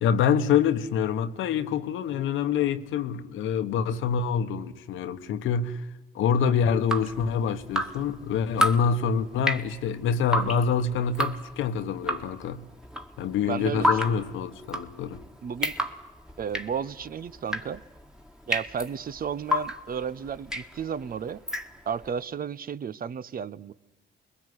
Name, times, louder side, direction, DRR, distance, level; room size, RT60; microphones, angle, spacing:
voice 1, 0.0-5.8 6.1-12.6 13.2-15.2, left 7 dB, 85° left, 1.3 m, -26 dB
Drip, 6.7-22.1, equal, 5° right, 1.8 m, -32 dB
voice 2, 13.5-14.2 15.4-15.7 16.4-17.8 18.5-21.4 21.9-23.7, right 7 dB, 45° right, 0.8 m, -33 dB
25.0 x 21.5 x 9.7 m
cardioid pair, 90°, 20 cm